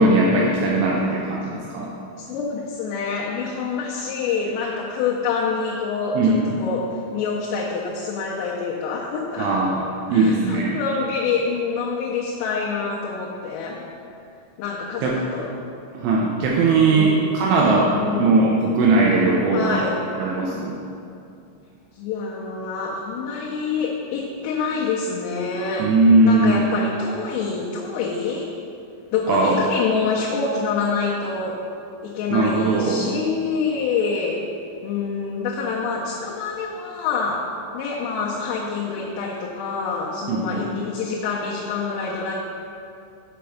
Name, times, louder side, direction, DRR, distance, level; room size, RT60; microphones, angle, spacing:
voice 1, 0.0-1.9 6.1-6.5 9.4-9.7 10.1-10.8 15.0-15.2 15.9-19.8 20.2-20.8 25.8-26.6 29.3-29.6 32.3-33.1 40.3-40.6, right 2 dB, 80° right, -3 dB, 2.8 m, -19 dB
voice 2, 2.3-6.9 7.1-9.5 10.1-13.8 14.6-15.5 16.9-17.4 17.9-18.5 19.5-20.0 22.0-25.9 26.2-28.5 29.1-31.6 32.0-34.4 34.8-37.4 37.7-42.3, left 5 dB, 80° left, -3 dB, 3.2 m, -26 dB
7.6 x 5.1 x 5.7 m, 2.6 s
omnidirectional pair, 6.0 m